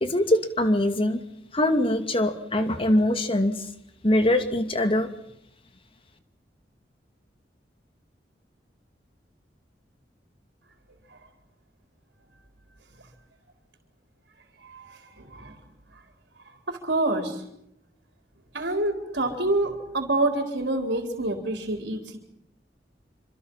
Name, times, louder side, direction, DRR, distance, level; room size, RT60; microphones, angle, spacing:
voice 1, 0.0-1.2 1.5-3.6 4.0-5.1, left 1 dB, 30° left, 7 dB, 2.6 m, -23 dB
voice 2, 15.2-15.5 16.7-17.4 18.5-22.2, right 2 dB, 85° right, 4 dB, 4.2 m, -27 dB
27.5 x 26.0 x 5.7 m, 0.77 s
head